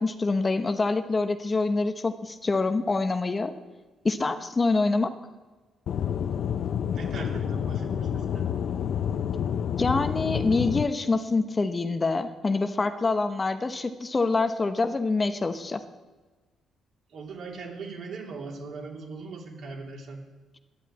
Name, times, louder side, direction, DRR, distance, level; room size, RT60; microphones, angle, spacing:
voice 1, 0.0-3.5 4.0-5.1 9.8-15.8, left 3 dB, 30° left, 8 dB, 0.9 m, -26 dB
Aircraft / Engine, 5.9-10.9, left 8 dB, 65° left, 0.5 m, -29 dB
voice 2, 6.9-8.4 17.1-20.2, right 3 dB, 65° right, -1 dB, 3.3 m, -39 dB
11.5 x 9.1 x 8.6 m, 1.3 s
cardioid pair, 90°, 0 cm